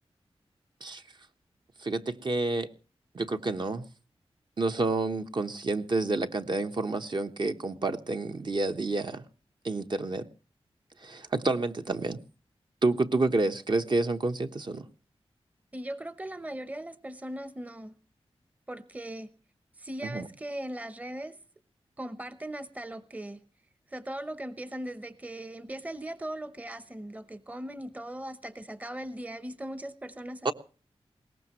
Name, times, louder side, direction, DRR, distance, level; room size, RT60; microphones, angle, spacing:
voice 1, 1.8-2.7 3.1-3.8 4.6-9.2 9.6-10.3 11.0-12.2 12.8-14.9 20.0-20.3 30.4-30.5, right 2 dB, 45° right, 1.2 m, -29 dB
voice 2, 15.7-18.0 18.7-19.3 19.8-21.4 22.0-23.4 23.9-30.5, right 1 dB, 15° right, 0.9 m, -39 dB
21.5 x 18.5 x 3.1 m
wide cardioid pair, 100°, 11 cm